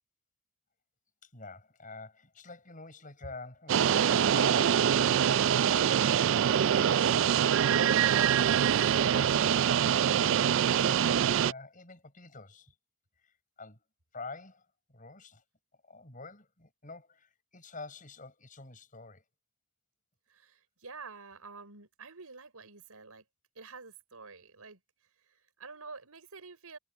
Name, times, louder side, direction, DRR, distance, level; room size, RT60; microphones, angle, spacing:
voice 1, 1.2-7.2 7.5-12.7 13.2-13.8 14.1-15.4 15.8-19.2, left 3 dB, 35° left, 6.7 m, -48 dB
sound 1, 3.7-11.5, right 9 dB, 55° right, 0.3 m, -24 dB
voice 2, 20.3-23.2 23.5-24.8 25.2-26.8, right 4 dB, 80° right, 4.8 m, -48 dB
head